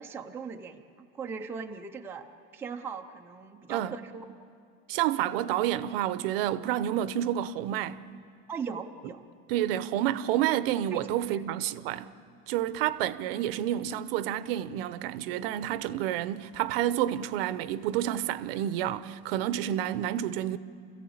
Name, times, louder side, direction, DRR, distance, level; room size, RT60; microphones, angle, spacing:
voice 1, 0.0-4.2 8.5-9.2 10.9-11.0 11.3-11.4, right 6 dB, 5° right, 0.5 m, -39 dB
voice 2, 4.9-8.0 9.5-12.1 12.5-20.6, right 12 dB, 60° right, 0.8 m, -29 dB
28.5 x 15.0 x 8.6 m
supercardioid pair, 165°, 33 cm